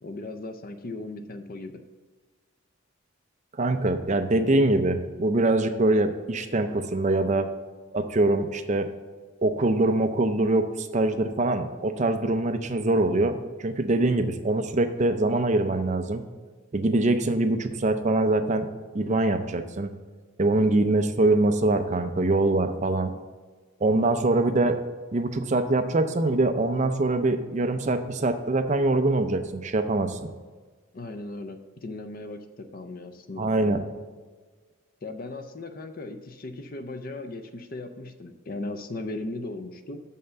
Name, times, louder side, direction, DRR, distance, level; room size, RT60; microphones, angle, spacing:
voice 1, 0.0-1.8 20.6-20.7 24.0-24.1 30.9-33.8 35.0-40.0, left 2 dB, 40° left, 8 dB, 0.5 m, -37 dB
voice 2, 3.6-7.5 7.9-8.9 9.4-16.2 16.7-18.7 18.9-19.9 20.4-23.1 23.8-24.8 25.1-30.2 33.4-33.8, right 2 dB, 35° right, 8 dB, 0.5 m, -23 dB
6.5 x 5.6 x 6.8 m, 1.4 s
head